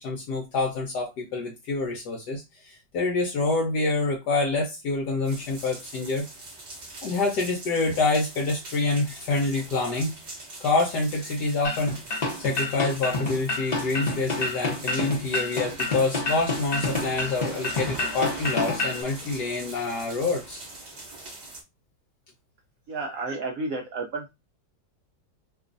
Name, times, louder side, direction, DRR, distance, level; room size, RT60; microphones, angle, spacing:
voice 1, 0.0-6.2 7.0-10.1 10.6-11.9 12.4-20.6, left 3 dB, 70° left, 1 dB, 1.2 m, -27 dB
sound 1, 5.2-21.6, right 2 dB, 50° right, 0.5 m, -42 dB
sound 2, 11.6-19.0, left 2 dB, 45° left, 0.5 m, -28 dB
voice 2, 22.9-24.3, right 3 dB, 70° right, 2 dB, 0.8 m, -31 dB
3.0 x 2.3 x 3.8 m, 0.23 s
omnidirectional pair, 1.9 m